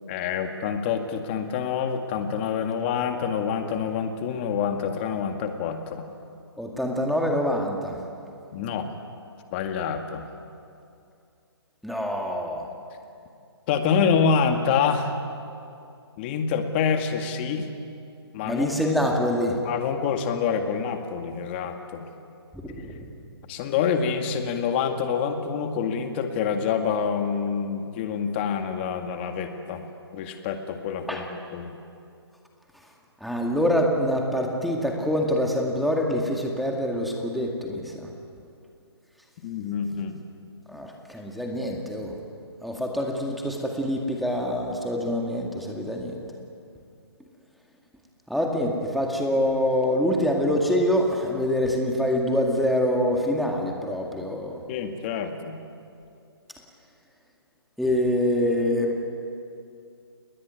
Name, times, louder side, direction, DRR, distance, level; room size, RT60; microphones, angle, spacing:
voice 1, 0.1-6.1 8.5-8.9 9.5-10.2 13.7-15.1 16.2-17.7 18.3-18.7 19.6-22.0 23.5-29.9 30.1-31.8 39.4-40.2 54.7-55.6, left 6 dB, 25° left, 6 dB, 2.1 m, -26 dB
voice 2, 6.6-8.0 11.8-12.7 18.4-19.6 22.5-23.1 31.1-31.2 33.2-38.1 40.7-42.1 42.6-46.2 48.3-54.6 57.8-59.0, equal, ahead, 0 dB, 2.1 m, -25 dB
29.0 x 20.0 x 9.5 m, 2.5 s
hypercardioid pair, 160°, 14 cm